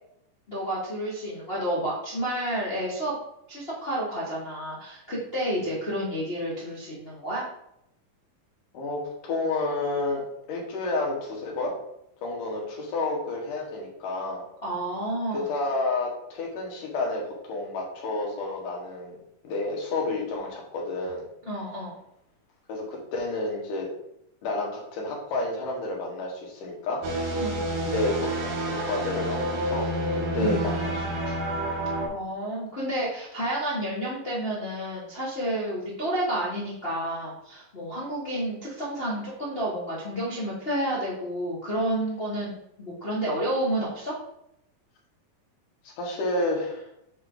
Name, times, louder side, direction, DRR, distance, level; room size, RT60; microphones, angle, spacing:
voice 1, 0.5-3.1 3.5-7.4 14.6-15.5 21.5-21.9 27.4-27.7 30.4-30.6 32.1-44.2, right 1 dB, 45° left, -6 dB, 0.7 m, -30 dB
voice 2, 8.7-10.2 10.5-11.7 12.2-14.4 15.3-19.2 19.4-21.2 22.7-23.9 24.4-27.4 27.9-31.4 45.8-46.9, left 2 dB, 75° left, -1 dB, 3.2 m, -30 dB
sound 1, 27.0-32.1, right 1 dB, 85° right, 3.2 m, -29 dB
7.9 x 4.5 x 3.9 m, 0.77 s
omnidirectional pair, 3.8 m